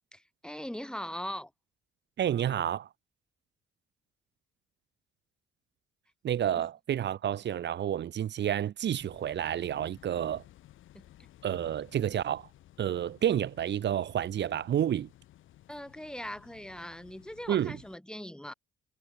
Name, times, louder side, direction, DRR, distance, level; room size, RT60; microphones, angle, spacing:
voice 1, 0.1-1.5 6.5-6.7 10.9-11.0 15.7-18.5, equal, 5° left, 3.1 m, -40 dB
voice 2, 2.2-2.9 6.2-10.4 11.4-12.5 12.8-15.1 17.5-17.8, right 10 dB, 65° right, 1.7 m, -30 dB
sound 1, 8.9-18.0, left 14 dB, 85° left, 6.2 m, -57 dB
cardioid pair, 90°, 20 cm